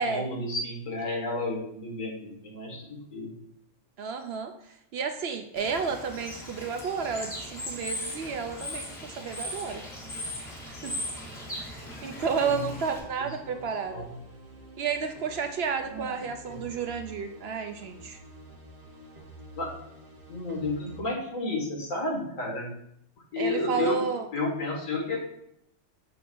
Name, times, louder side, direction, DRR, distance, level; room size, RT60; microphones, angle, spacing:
voice 1, 0.0-3.3 12.4-12.7 13.5-14.1 15.8-16.1 16.4-16.7 19.6-19.7 20.3-22.7 23.3-24.0 24.3-25.2, left 2 dB, 85° left, -2 dB, 2.0 m, -32 dB
voice 2, 4.0-9.8 10.7-10.9 11.6-14.0 14.8-18.2 23.4-24.3, right 5 dB, 65° right, 7 dB, 0.7 m, -31 dB
Bird / Water, 5.6-13.0, left 1 dB, 50° left, 1.9 m, -38 dB
sound 1, 12.1-21.0, right 2 dB, 35° right, 1.0 m, -49 dB
6.9 x 6.0 x 2.5 m, 0.73 s
omnidirectional pair, 1.3 m